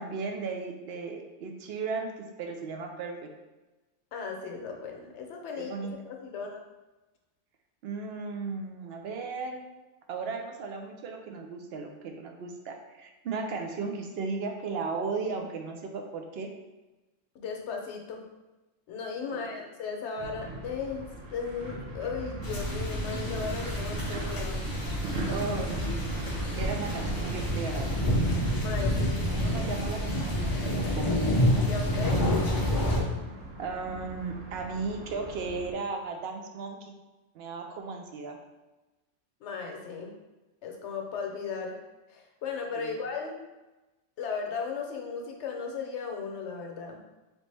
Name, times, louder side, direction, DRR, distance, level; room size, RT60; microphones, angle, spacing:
voice 1, 0.0-3.3 5.5-5.9 7.8-9.6 10.1-16.5 19.2-19.5 25.3-26.0 26.6-28.1 29.3-30.5 30.8-31.1 33.6-36.9 37.3-38.4 42.7-42.9, right 4 dB, 60° right, 4 dB, 0.7 m, -36 dB
voice 2, 4.1-6.6 17.3-18.2 18.9-24.6 28.6-29.3 31.6-32.2 39.4-40.1 40.6-41.8 42.1-43.4 44.2-47.0, left 5 dB, 70° left, 2 dB, 1.0 m, -36 dB
sound 1, 20.2-35.7, right 2 dB, 85° right, 1.2 m, -39 dB
sound 2, 22.4-33.0, equal, 30° left, 0.4 m, -28 dB
3.9 x 3.2 x 3.3 m, 1.1 s
omnidirectional pair, 1.3 m